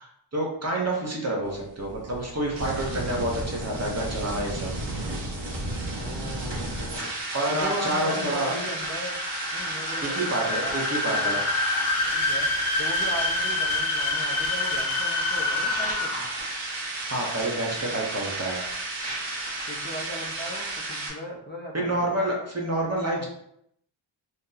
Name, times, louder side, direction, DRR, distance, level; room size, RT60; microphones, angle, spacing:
voice 1, 0.3-4.7 7.3-8.5 10.0-11.4 17.1-18.6 21.7-23.3, right 1 dB, 30° right, -2 dB, 0.8 m, -28 dB
sound 1, 1.4-21.1, right 2 dB, 65° right, 1.0 m, -33 dB
sound 2, 5.8-16.5, left 3 dB, 75° left, 0.8 m, -28 dB
voice 2, 6.0-7.1 7.5-9.2 9.5-11.4 12.1-12.5 12.8-16.3 19.7-22.2, equal, 20° left, -3 dB, 0.6 m, -37 dB
2.7 x 2.2 x 3.8 m, 0.74 s
wide cardioid pair, 75°, 48 cm